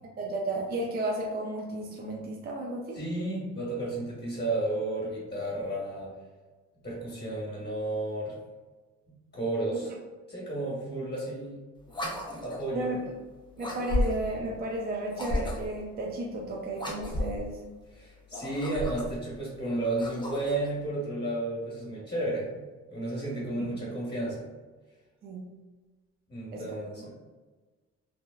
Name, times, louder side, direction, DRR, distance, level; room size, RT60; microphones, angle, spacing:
voice 1, 0.2-3.0 9.7-9.8 12.7-13.0 13.6-17.6 23.6-23.7 25.2-25.5 26.5-26.8, right 2 dB, 30° right, -1 dB, 0.4 m, -33 dB
voice 2, 2.9-6.1 6.8-8.4 9.1-9.9 10.3-11.6 12.4-12.9 17.9-22.6 22.9-24.5 26.3-27.1, right 2 dB, 35° left, -6 dB, 1.2 m, -32 dB
sound 1, 11.9-12.7 13.6-14.4 15.1-15.8 16.7-17.5 18.2-19.2 19.8-20.7, left 1 dB, 15° left, 0.6 m, -33 dB
3.3 x 2.0 x 2.2 m, 1.3 s
cardioid pair, 90°, 30 cm